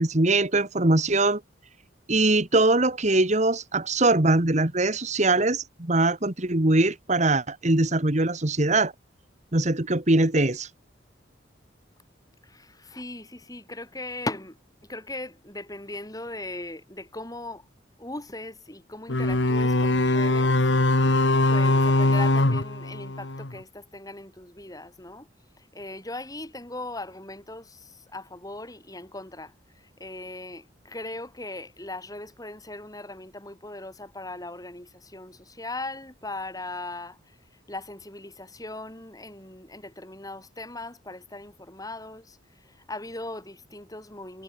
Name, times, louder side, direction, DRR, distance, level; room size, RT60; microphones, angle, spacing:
voice 1, 0.0-1.4 2.1-8.9 9.5-10.7, right 2 dB, 40° right, 1.8 m, -22 dB
voice 2, 12.4-17.7 18.0-20.6 21.5-25.3 25.5-44.4, left 2 dB, 20° left, 6.9 m, -39 dB
sound 1, 19.1-23.6, left 2 dB, 70° left, 1.7 m, -22 dB
head